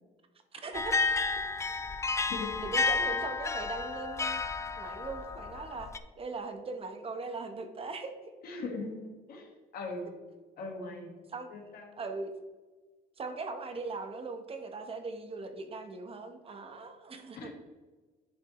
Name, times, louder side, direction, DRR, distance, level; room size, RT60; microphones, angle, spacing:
voice 1, 0.5-1.2 1.7-1.8 2.6-8.3 11.3-11.7 12.0-12.3 13.2-17.5, right 3 dB, 35° right, 6 dB, 1.0 m, -40 dB
sound 1, 0.7-6.0, left 4 dB, 15° left, 0.4 m, -31 dB
voice 2, 2.1-2.5 8.4-10.1 10.6-11.2 11.5-12.0 17.3-17.5, left 3 dB, 65° left, 2 dB, 1.6 m, -40 dB
10.0 x 5.4 x 3.1 m, 1.3 s
cardioid pair, 110°, 17 cm